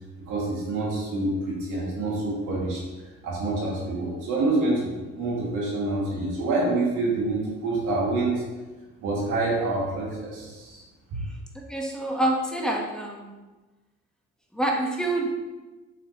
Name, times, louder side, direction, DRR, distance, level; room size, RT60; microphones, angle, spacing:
voice 1, 0.3-2.8 3.2-8.4 9.0-10.8, right 2 dB, 90° right, -4 dB, 2.1 m, -27 dB
voice 2, 11.7-13.3 14.5-15.3, right 1 dB, ahead, -1 dB, 1.1 m, -26 dB
7.3 x 5.3 x 2.9 m, 1.2 s
cardioid pair, 90°, 30 cm